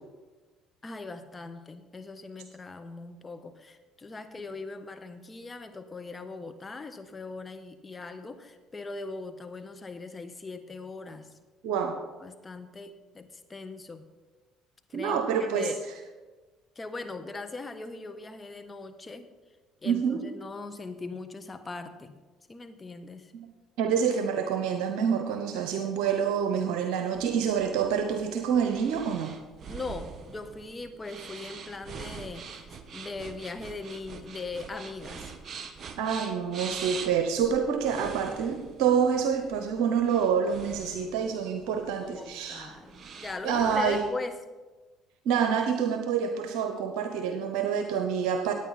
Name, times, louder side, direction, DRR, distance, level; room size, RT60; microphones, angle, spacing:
voice 1, 0.8-11.3 12.2-14.1 14.9-15.8 16.7-19.3 19.8-22.2 22.5-23.3 29.7-35.3 42.0-44.4, left 3 dB, 25° left, 9 dB, 1.2 m, -40 dB
voice 2, 11.6-12.0 14.9-15.7 19.8-20.2 23.8-29.3 36.0-42.8 43.4-44.0 45.2-48.5, right 7 dB, 75° right, 5 dB, 0.9 m, -27 dB
sound 1, 27.1-44.1, right 6 dB, 45° right, 1.3 m, -44 dB
15.5 x 9.2 x 4.1 m, 1.3 s
hypercardioid pair, 65°, 0 cm